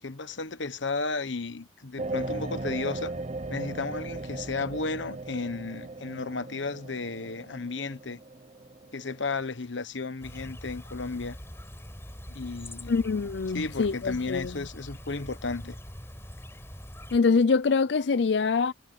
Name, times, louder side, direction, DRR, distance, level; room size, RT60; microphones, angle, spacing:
voice 1, 0.0-3.1 3.5-8.2 8.9-11.4 12.3-13.0 13.5-15.7, left 3 dB, 90° left, 1.3 m, -33 dB
sound 1, 2.0-9.4, right 2 dB, 40° right, 1.0 m, -37 dB
Chirp tweet, 10.2-17.2, equal, 15° left, 5.3 m, -43 dB
voice 2, 12.9-14.6 17.1-18.7, left 4 dB, 70° left, 0.5 m, -24 dB
head